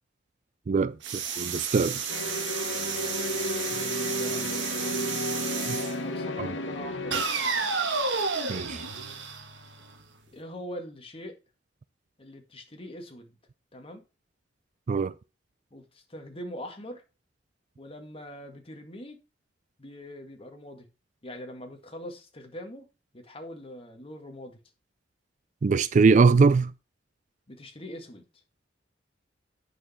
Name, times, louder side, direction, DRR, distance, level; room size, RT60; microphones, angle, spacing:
voice 1, 0.7-2.0 5.7-5.8 6.4-6.5 8.5-8.8 14.9-15.1 25.6-26.7, right 4 dB, 40° right, 0.4 m, -22 dB
sound 1, 1.0-6.0 7.1-10.0, right 5 dB, 75° right, 1.7 m, -31 dB
sound 2, 2.1-7.2, left 1 dB, 80° left, 1.4 m, -32 dB
voice 2, 3.8-4.9 6.0-7.2 10.3-11.3 12.2-13.4 13.7-14.0 15.7-17.0 17.8-19.2 19.8-20.9 21.2-22.9 23.1-24.6 27.5-28.2, equal, 30° left, 1.9 m, -42 dB
9.0 x 6.5 x 4.3 m
head